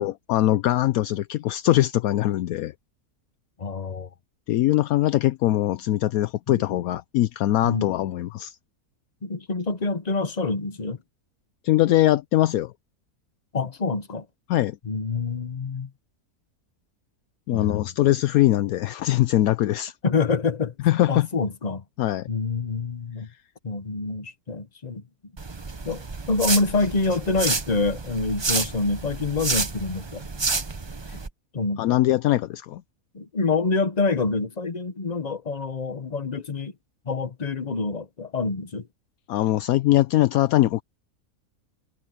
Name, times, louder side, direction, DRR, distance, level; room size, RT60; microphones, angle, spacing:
voice 1, 0.0-2.7 4.5-8.6 11.6-12.7 14.5-14.8 17.5-19.9 20.8-21.3 22.0-22.3 31.8-32.8 39.3-40.8, left 14 dB, 75° left, 1.0 m, -22 dB
voice 2, 3.6-4.1 6.5-6.6 7.6-7.9 9.2-11.0 13.5-14.2 14.9-15.9 17.5-17.8 20.0-20.7 21.1-21.8 22.3-23.3 23.6-25.0 25.8-30.2 31.1-31.2 31.5-31.9 33.1-36.7 37.1-38.8, left 3 dB, 30° left, 1.0 m, -26 dB
sound 1, 25.4-31.3, right 4 dB, 25° right, 0.6 m, -29 dB
omnidirectional pair, 1.6 m